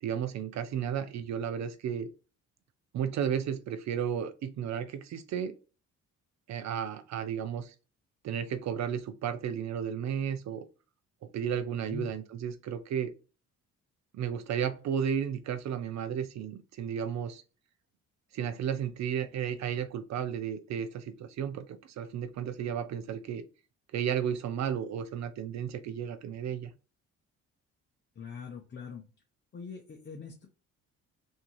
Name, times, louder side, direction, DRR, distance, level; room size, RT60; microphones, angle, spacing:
voice 1, 0.0-2.1 2.9-5.5 6.5-7.7 8.2-10.6 11.2-13.1 14.1-17.4 18.3-23.4 23.9-26.7, right 8 dB, 65° right, 10 dB, 0.5 m, -33 dB
voice 2, 28.2-29.0 29.5-30.5, left 5 dB, 35° left, 2 dB, 0.7 m, -42 dB
3.5 x 2.7 x 3.1 m, 0.34 s
cardioid pair, 90°, 30 cm